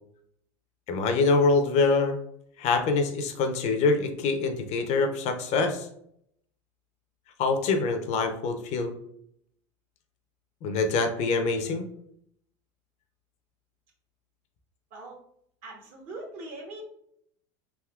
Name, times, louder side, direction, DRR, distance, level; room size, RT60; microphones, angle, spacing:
voice 1, 0.9-2.2 2.6-5.9 7.4-9.0 10.6-11.9, left 4 dB, 50° left, 7 dB, 0.5 m, -25 dB
voice 2, 15.6-16.8, right 2 dB, 60° right, 1 dB, 1.0 m, -41 dB
3.5 x 2.7 x 2.3 m, 0.70 s
supercardioid pair, 110°, 14 cm